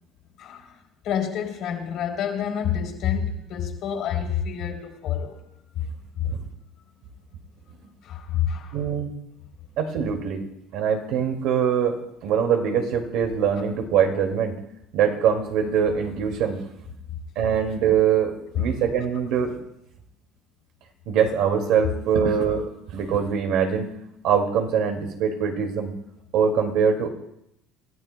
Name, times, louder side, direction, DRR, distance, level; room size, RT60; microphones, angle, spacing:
voice 1, 0.4-5.4 5.7-5.9 6.2-6.3 8.0-8.8 18.5-18.6, left 8 dB, 50° left, 2 dB, 3.1 m, -28 dB
voice 2, 8.7-9.1 9.8-10.4 10.7-14.6 14.9-16.6 17.4-19.6 21.1-22.7 22.9-23.9 24.2-25.9 26.3-27.1, right 7 dB, 60° right, 4 dB, 2.1 m, -23 dB
28.0 x 14.5 x 2.2 m, 0.81 s
cardioid pair, 165°, 0 cm